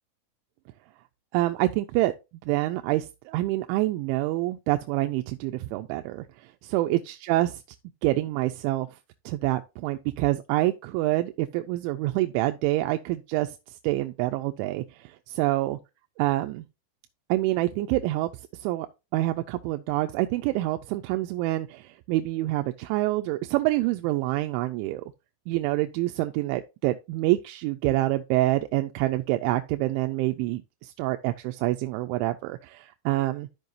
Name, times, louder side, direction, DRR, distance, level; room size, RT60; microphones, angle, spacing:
voice 1, 1.3-2.1 2.4-6.3 6.6-7.6 8.0-8.9 9.3-13.6 13.8-15.8 16.2-16.7 17.3-18.9 19.1-25.0 25.5-33.5, right 17 dB, 85° right, 2.9 m, -26 dB
13.5 x 5.4 x 2.6 m
omnidirectional pair, 5.6 m